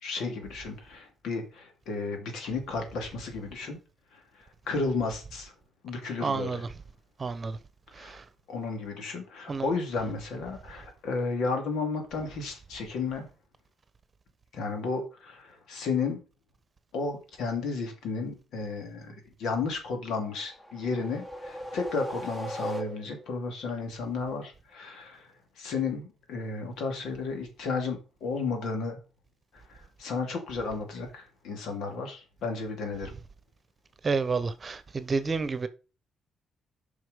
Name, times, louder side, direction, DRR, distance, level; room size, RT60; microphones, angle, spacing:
voice 1, 0.0-3.8 4.1-4.2 4.7-5.5 5.8-6.6 8.0-8.2 8.5-13.3 14.5-16.2 16.9-25.3 25.6-29.0 29.5-33.1, left 4 dB, 80° left, 2.8 m, -33 dB
voice 2, 6.2-6.7 7.2-7.6 8.0-8.2 9.5-9.7 34.0-35.7, right 4 dB, 35° right, 1.1 m, -30 dB
sound 1, 20.2-23.4, equal, 15° left, 1.9 m, -39 dB
7.7 x 5.5 x 5.2 m
cardioid pair, 90°, 0 cm